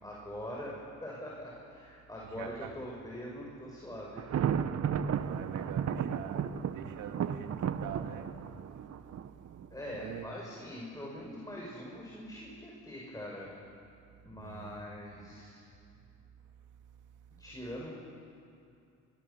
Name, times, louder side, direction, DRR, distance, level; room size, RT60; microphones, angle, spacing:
voice 1, 0.0-4.2 9.7-13.5 14.2-15.7 17.4-17.9, equal, 10° left, -3 dB, 6.5 m, -43 dB
voice 2, 2.3-2.7 5.1-8.3 8.7-8.9 9.2-9.3 9.6-9.7 10.0-10.4 14.3-14.8 15.1-15.2 16.4-17.0, right 8 dB, 85° right, 5 dB, 2.3 m, -45 dB
Thunder, 4.2-10.0, right 8 dB, 55° right, 1.1 m, -34 dB
25.5 x 25.0 x 7.2 m, 2.6 s
cardioid pair, 90°, 30 cm